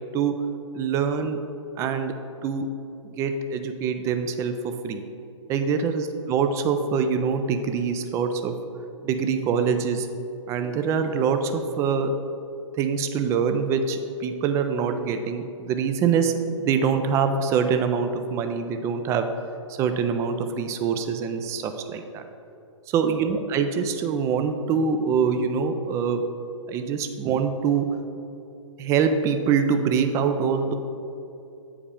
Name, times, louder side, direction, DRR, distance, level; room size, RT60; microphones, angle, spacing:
voice 1, 0.7-1.4 1.8-2.1 2.4-2.7 3.0-5.0 5.5-8.5 9.0-10.1 10.5-12.1 12.8-19.3 19.8-22.2 22.9-26.2 26.7-27.9 28.8-30.7, right 6 dB, 20° right, 7 dB, 0.4 m, -24 dB
8.4 x 4.9 x 3.5 m, 2.7 s
figure-of-eight pair, 125°, 16 cm